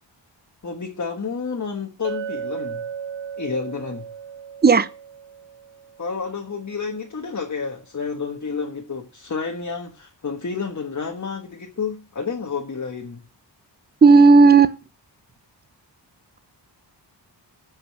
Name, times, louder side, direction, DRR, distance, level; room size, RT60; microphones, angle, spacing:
voice 1, 0.6-2.8 3.3-4.1 6.0-13.2, left 5 dB, 40° left, 1.5 m, -30 dB
Chink clink, 2.0-6.3, right 7 dB, 80° right, 0.7 m, -35 dB
voice 2, 14.0-14.7, right 4 dB, 25° right, 0.6 m, -11 dB
15.0 x 5.5 x 7.7 m
wide cardioid pair, 135°, 44 cm